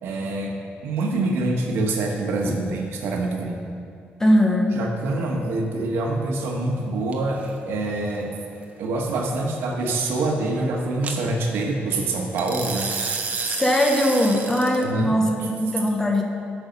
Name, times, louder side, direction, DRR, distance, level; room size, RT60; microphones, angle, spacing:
voice 1, 0.0-0.6 0.8-3.7 4.7-8.3 8.8-12.9 14.8-15.1, right 2 dB, 80° right, 1 dB, 1.3 m, -25 dB
voice 2, 2.4-2.8 4.2-4.8 13.4-16.2, equal, 15° left, 2 dB, 0.8 m, -21 dB
sound 1, 7.1-7.5 11.0-11.2 12.4-14.8, right 5 dB, 40° right, 0.8 m, -30 dB
9.4 x 6.4 x 5.3 m, 2.5 s
cardioid pair, 170°, 4 cm